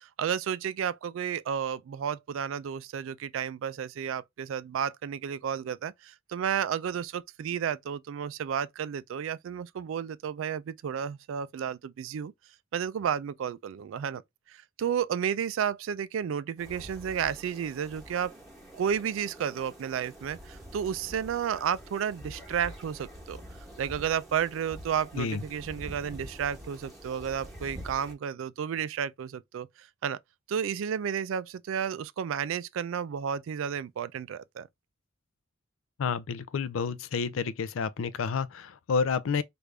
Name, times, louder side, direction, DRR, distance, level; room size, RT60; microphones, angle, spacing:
voice 1, 0.2-12.3 12.7-14.2 14.5-18.3 18.7-23.4 23.8-30.2 30.5-34.7, right 8 dB, 75° right, 0.3 m, -32 dB
sound 1, 16.6-28.1, equal, ahead, 1.1 m, -46 dB
voice 2, 36.0-39.4, left 5 dB, 80° left, 0.4 m, -30 dB
3.3 x 2.5 x 3.3 m
head